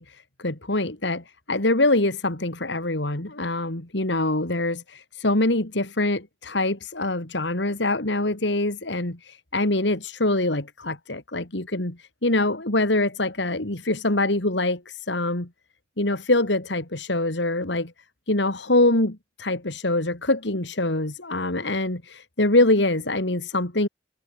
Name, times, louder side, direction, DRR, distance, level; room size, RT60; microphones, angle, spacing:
voice 1, 0.0-15.5 16.0-17.9 18.3-23.9, left 2 dB, 70° left, 3.0 m, -24 dB
head